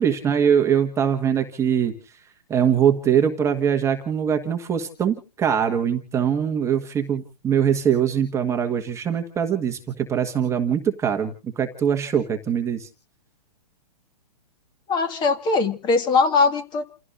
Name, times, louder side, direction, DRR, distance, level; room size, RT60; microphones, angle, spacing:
voice 1, 0.0-1.9 2.5-12.9, right 8 dB, 15° right, 5 dB, 1.5 m, -22 dB
voice 2, 14.9-16.8, left 4 dB, 20° left, 8 dB, 2.0 m, -20 dB
29.5 x 16.0 x 2.6 m, 0.38 s
hypercardioid pair, 140°, 21 cm